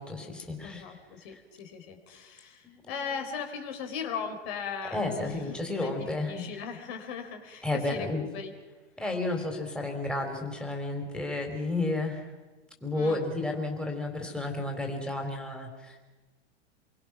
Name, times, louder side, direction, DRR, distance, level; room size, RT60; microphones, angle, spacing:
voice 1, 0.0-1.0 2.6-3.0 4.9-6.6 7.6-8.3 9.0-12.3 12.8-16.0, left 2 dB, 5° left, 2 dB, 3.8 m, -32 dB
voice 2, 0.6-8.5 12.9-13.2, left 6 dB, 55° left, 5 dB, 4.2 m, -38 dB
27.0 x 23.5 x 6.1 m, 1.2 s
hypercardioid pair, 120°, 36 cm